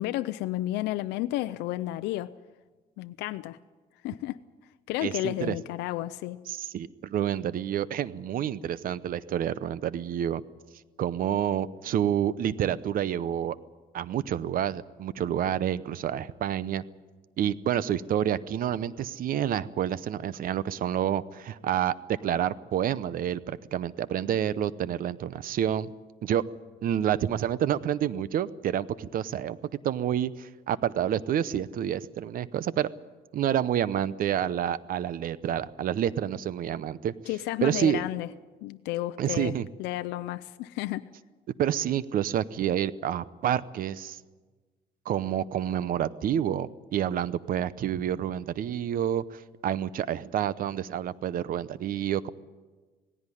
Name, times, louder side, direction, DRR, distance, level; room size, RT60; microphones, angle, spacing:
voice 1, 0.0-2.3 3.0-3.6 4.0-4.4 4.9-6.4 37.3-38.3 38.6-41.0, left 16 dB, 90° left, 11 dB, 0.6 m, -32 dB
voice 2, 5.0-5.6 6.5-10.4 11.0-13.6 13.9-16.8 17.4-25.9 26.2-26.4 26.8-29.6 29.8-32.9 33.3-37.1 37.6-38.0 39.2-39.7 41.6-44.2 45.1-52.3, right 10 dB, 55° right, 18 dB, 0.8 m, -28 dB
18.0 x 16.5 x 9.9 m, 1.3 s
cardioid pair, 110°, 17 cm